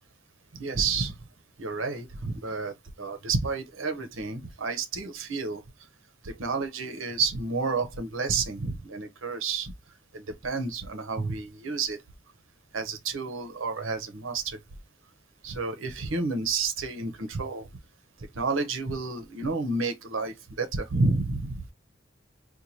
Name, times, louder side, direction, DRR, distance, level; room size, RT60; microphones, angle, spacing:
voice 1, 0.6-1.1 1.6-5.6 6.2-9.7 10.1-12.0 12.7-14.6 15.4-17.7 18.4-21.5, right 4 dB, 80° right, 0.7 m, -30 dB
4.5 x 2.2 x 2.7 m
head